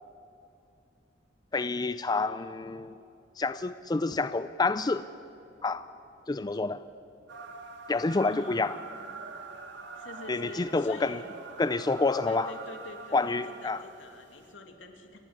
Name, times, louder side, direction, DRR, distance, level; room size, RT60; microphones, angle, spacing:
voice 1, 1.5-2.9 3.4-5.1 5.6-5.9 6.3-6.8 7.9-8.7 10.3-11.2 11.6-12.5 13.1-13.8, left 3 dB, 20° left, 12 dB, 0.4 m, -28 dB
sound 1, 7.3-14.5, right 4 dB, 65° right, 2.3 m, -45 dB
voice 2, 8.2-8.7 9.9-11.2 12.2-15.2, left 2 dB, 75° left, 4 dB, 2.6 m, -46 dB
28.5 x 12.0 x 9.8 m, 2.7 s
head